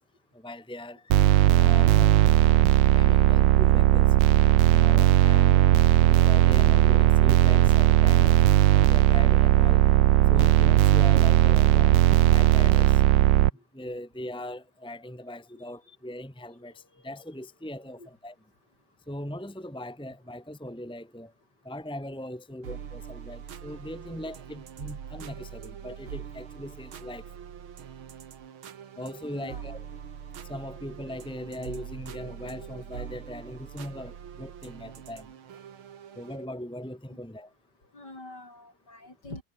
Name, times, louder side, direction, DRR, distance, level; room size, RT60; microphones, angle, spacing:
voice 1, 0.3-2.1 2.9-4.2 4.7-5.6 6.0-8.4 8.7-9.8 10.3-12.0 12.3-13.0 13.7-18.4 19.1-21.3 21.6-27.2 29.0-29.9 30.5-35.3 36.2-37.5, left 1 dB, ahead, 2.5 m, -39 dB
sound 1, 1.1-13.5, right 13 dB, 70° right, 1.4 m, -18 dB
sound 2, 22.6-36.5, right 8 dB, 85° right, 2.4 m, -43 dB
voice 2, 29.0-29.6 37.1-37.2 37.9-39.4, left 2 dB, 55° left, 8.5 m, -46 dB
omnidirectional pair, 2.2 m